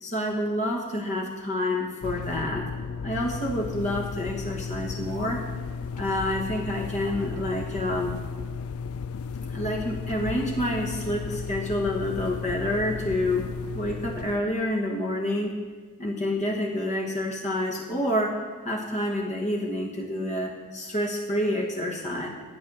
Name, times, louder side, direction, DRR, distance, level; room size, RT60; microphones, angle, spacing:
voice 1, 0.0-2.7 3.0-5.4 6.0-8.2 9.4-13.5 13.7-15.5 16.0-22.3, left 1 dB, 30° left, 0 dB, 1.3 m, -28 dB
sound 1, 2.0-14.4, left 5 dB, 70° left, 0.4 m, -34 dB
11.5 x 9.1 x 6.2 m, 1.4 s
head